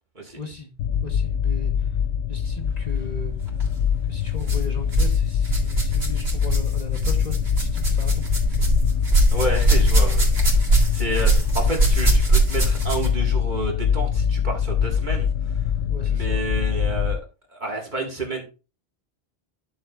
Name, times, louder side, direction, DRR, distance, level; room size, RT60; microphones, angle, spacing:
voice 1, 0.4-0.7 1.0-2.0 2.3-3.3 4.0-8.7 9.0-9.1 15.8-16.4, left 3 dB, 40° left, 1.2 m, -38 dB
sound 1, 0.8-17.2, left 8 dB, 80° left, 0.9 m, -23 dB
sound 2, 3.5-3.7 4.4-5.2 5.4-13.2 14.2-14.3 15.1-15.2, right 3 dB, 70° right, 2.4 m, -22 dB
voice 2, 9.3-10.3 10.7-15.6 16.1-17.2 17.5-18.4, right 2 dB, 45° right, 2.0 m, -30 dB
11.0 x 7.0 x 2.4 m
omnidirectional pair, 1.1 m